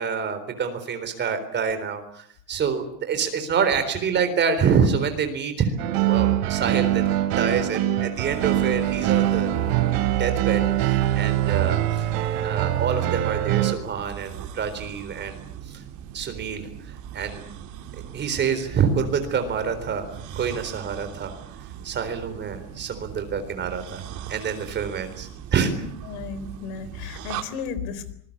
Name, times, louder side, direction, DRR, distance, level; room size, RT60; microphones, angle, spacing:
voice 1, 0.0-5.7 6.0-9.5 10.2-12.1 12.4-15.8 16.1-17.4 18.1-21.4 21.8-24.0 24.3-25.7, right 6 dB, 25° right, 8 dB, 3.9 m, -27 dB
sound 1, 5.8-13.7, right 13 dB, 65° right, 3.6 m, -23 dB
sound 2, 8.1-27.4, right 10 dB, 45° right, 2.8 m, -40 dB
voice 2, 25.8-28.1, left 6 dB, 80° left, 15 dB, 4.1 m, -34 dB
26.0 x 21.5 x 8.6 m, 0.64 s
cardioid pair, 175°, 41 cm